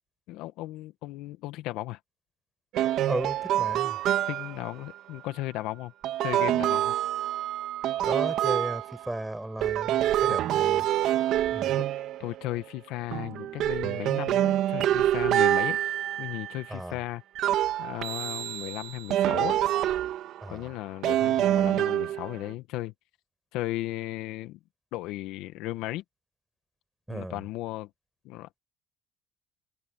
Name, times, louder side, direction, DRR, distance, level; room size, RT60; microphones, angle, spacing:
voice 1, 0.3-2.0 4.3-5.9 6.2-7.0 10.2-10.4 11.8-15.8 16.2-17.2 17.8-19.6 20.5-22.9 23.5-24.6 24.9-26.0 27.1-27.9 28.2-28.6, left 17 dB, 75° left, 1.8 m, -35 dB
sound 1, 2.7-4.7 6.0-9.2 9.6-12.7 13.1-16.7 17.3-20.5 21.0-22.5, right 12 dB, 65° right, 2.1 m, -26 dB
voice 2, 3.1-4.0 8.0-10.8 11.5-11.7 16.7-17.0 20.4-20.7 27.1-27.4, right 1 dB, 10° right, 5.1 m, -35 dB
supercardioid pair, 80°, 0 cm